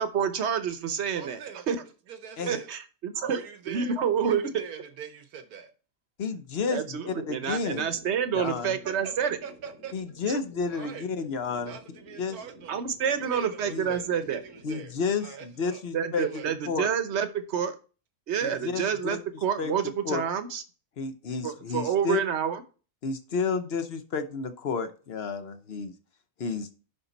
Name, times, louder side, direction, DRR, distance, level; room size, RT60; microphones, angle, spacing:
voice 1, 0.0-1.4 1.7-1.8 2.5-3.4 3.7-4.5 6.7-9.4 10.3-10.4 12.7-14.4 15.9-17.7 18.3-20.6 21.4-22.6, right 7 dB, 55° right, 10 dB, 1.0 m, -28 dB
voice 2, 1.1-1.7 2.1-2.7 3.2-5.7 8.8-9.9 10.7-11.0 11.7-12.8 13.2-14.9 15.2-15.8 16.1-16.5, right 7 dB, 90° right, 8 dB, 1.5 m, -42 dB
voice 3, 6.2-7.9 8.3-8.7 9.9-11.7 12.2-12.4 13.7-13.9 14.6-16.3 16.7-16.9 18.4-19.2 19.6-19.7 20.0-20.2 21.0-22.2 23.0-25.9 26.4-26.7, left 5 dB, 50° left, 9 dB, 1.0 m, -31 dB
sound 1, 7.4-14.8, equal, 80° left, 4.5 m, -52 dB
11.0 x 4.2 x 4.1 m, 0.36 s
omnidirectional pair, 1.5 m